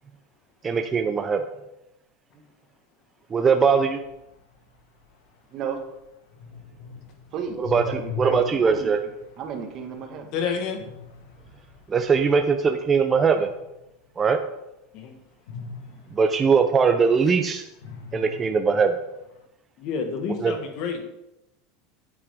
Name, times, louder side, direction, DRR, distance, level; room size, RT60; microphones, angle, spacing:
voice 1, 0.6-1.4 3.3-4.0 7.6-9.0 11.9-13.5 14.2-14.4 16.2-17.6 18.1-19.0 20.4-20.5, right 5 dB, 20° right, 6 dB, 0.5 m, -21 dB
sound 1, 3.9-14.1 15.5-17.4 17.7-19.4, left 4 dB, 85° left, 1.4 m, -41 dB
voice 2, 7.3-8.9 9.4-10.3, right 6 dB, 40° right, 3 dB, 1.6 m, -33 dB
voice 3, 10.3-10.8 14.9-15.2 19.8-21.0, left 6 dB, 50° left, 6 dB, 1.6 m, -29 dB
8.7 x 8.6 x 3.6 m, 0.89 s
supercardioid pair, 150°, 0 cm